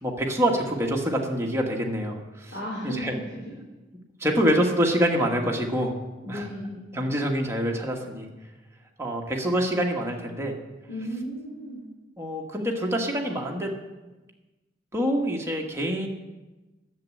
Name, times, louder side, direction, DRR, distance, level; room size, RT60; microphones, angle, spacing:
voice 1, 0.0-2.5 2.8-3.2 4.2-5.9 6.3-6.5 6.9-8.3 9.0-10.5 12.2-13.7 14.9-16.1, equal, 15° right, 0 dB, 1.4 m, -26 dB
voice 2, 2.5-3.1 6.2-6.9 10.9-11.8, equal, 65° left, -7 dB, 3.9 m, -34 dB
10.5 x 7.5 x 8.4 m, 1.1 s
head